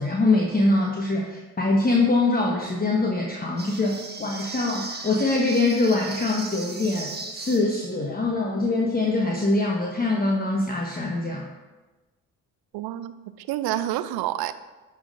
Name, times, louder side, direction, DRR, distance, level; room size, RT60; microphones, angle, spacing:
voice 1, 0.0-11.4, left 2 dB, 20° left, -1 dB, 1.0 m, -23 dB
sound 1, 3.6-7.9, right 3 dB, 25° right, 1.1 m, -37 dB
voice 2, 12.7-14.5, right 13 dB, 60° right, 14 dB, 0.5 m, -28 dB
11.0 x 5.5 x 2.6 m, 1.2 s
hypercardioid pair, 45°, 43 cm